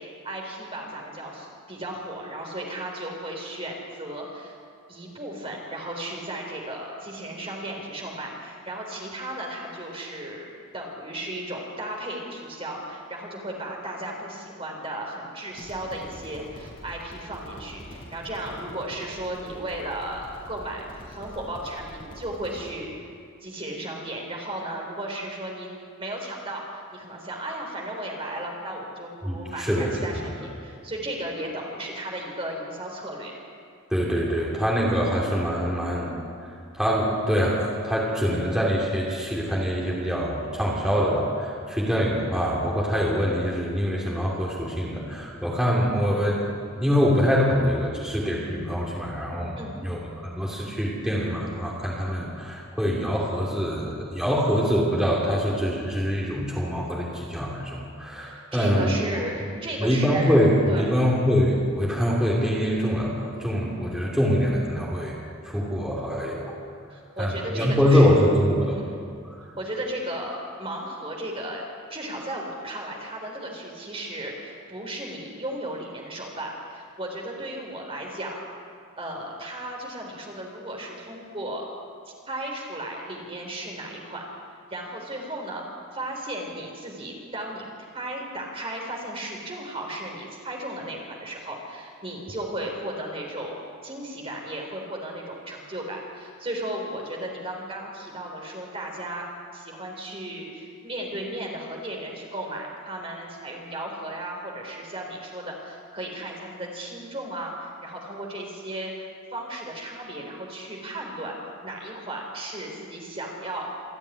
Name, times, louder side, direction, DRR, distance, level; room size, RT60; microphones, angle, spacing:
voice 1, 0.0-4.6 4.9-22.9 23.4-25.7 26.0-33.3 49.6-49.8 58.2-61.1 66.9-68.1 68.6-69.0 69.6-78.4 79.0-81.7 82.3-84.3 84.7-85.7 85.9-87.6 87.9-99.3 99.5-111.4 111.6-113.7, right 1 dB, 25° right, 0 dB, 3.8 m, -35 dB
sound 1, 15.5-22.7, equal, 40° left, 7.4 m, -45 dB
voice 2, 29.2-30.2 33.9-36.1 36.7-59.0 59.8-65.1 65.4-66.6 67.2-68.8, equal, 5° right, -5 dB, 2.9 m, -24 dB
27.5 x 10.0 x 10.0 m, 2.3 s
head